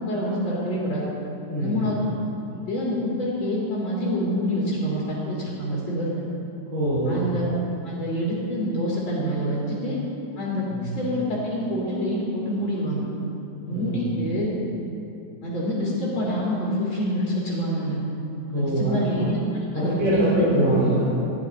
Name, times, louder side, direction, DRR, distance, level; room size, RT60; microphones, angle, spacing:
voice 1, 0.1-1.0 1.6-2.1 2.5-6.1 7.1-7.5 7.8-10.0 10.4-13.0 13.6-14.5 15.4-18.0 18.6-19.4 19.7-20.4, equal, 80° left, -7 dB, 3.5 m, -26 dB
voice 2, 1.5-1.8 6.7-7.2 10.7-10.9 13.7-14.0 18.5-19.3 19.7-21.2, right 1 dB, 70° right, -11 dB, 4.8 m, -23 dB
16.5 x 12.0 x 4.2 m, 2.9 s
omnidirectional pair, 2.2 m